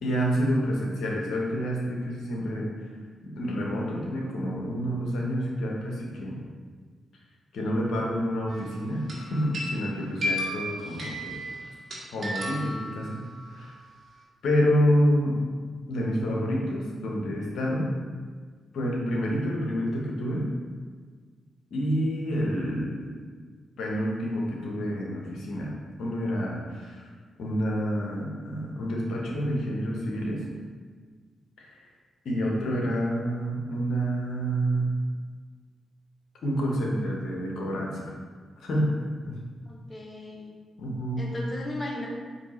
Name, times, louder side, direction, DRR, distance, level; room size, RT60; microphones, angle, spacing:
voice 1, 0.0-2.7 3.2-6.4 7.5-11.4 12.1-13.2 13.5-13.7 14.4-15.6 15.9-18.0 18.7-20.5 21.7-23.2 23.8-25.7 26.0-27.1 27.4-30.4 31.6-31.8 32.2-34.9 36.4-38.1 38.6-38.9 39.2-39.4 40.8-41.3, equal, 75° left, -2 dB, 0.9 m, -28 dB
sound 1, 8.5-8.8 9.1-13.5, left 1 dB, 55° right, 1.4 m, -34 dB
voice 2, 39.7-40.5 41.2-42.1, left 1 dB, 35° left, -2 dB, 1.2 m, -36 dB
4.5 x 2.8 x 4.1 m, 1.5 s
supercardioid pair, 45°, 0 cm